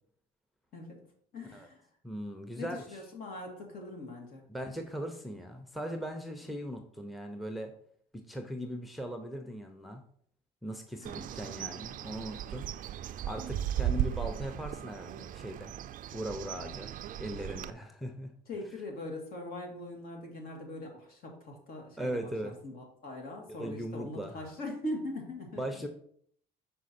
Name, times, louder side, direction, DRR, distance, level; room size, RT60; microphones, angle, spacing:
voice 1, 0.7-1.0 1.3-1.9 2.6-4.5 6.4-6.5 11.0-11.3 18.5-25.6, left 1 dB, 60° left, 1 dB, 2.1 m, -41 dB
voice 2, 2.0-2.8 4.5-7.7 8.1-10.0 10.6-12.7 13.3-15.7 16.1-18.3 22.0-22.6 23.6-24.3 25.6-25.9, equal, ahead, 5 dB, 0.7 m, -39 dB
Bird, 11.0-17.7, right 11 dB, 55° right, 0.4 m, -36 dB
6.3 x 4.5 x 4.3 m, 0.63 s
cardioid pair, 110°, 17 cm